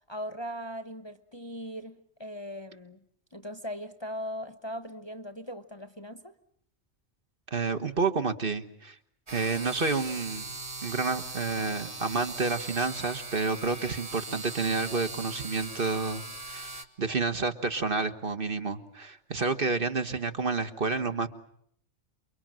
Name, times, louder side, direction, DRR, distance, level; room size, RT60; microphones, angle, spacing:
voice 1, 0.1-3.0 3.3-6.4, equal, 20° left, 1.1 m, -39 dB
voice 2, 7.5-9.0 9.3-10.5 10.8-21.3, right 4 dB, 45° right, 1.6 m, -30 dB
sound 1, 9.3-16.8, right 3 dB, 30° right, 2.1 m, -40 dB
29.0 x 23.5 x 7.5 m
omnidirectional pair, 1.3 m